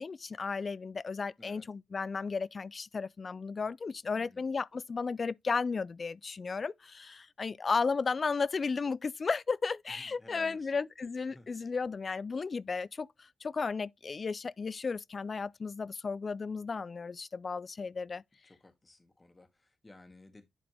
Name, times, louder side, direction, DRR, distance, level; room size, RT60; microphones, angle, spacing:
voice 1, 0.0-18.2, left 4 dB, 45° left, 0.4 m, -34 dB
voice 2, 1.4-1.7 4.1-4.4 9.9-10.7 11.3-11.5 18.4-20.5, left 2 dB, 25° left, 1.8 m, -55 dB
10.5 x 4.1 x 3.4 m
cardioid pair, 85°, 0 cm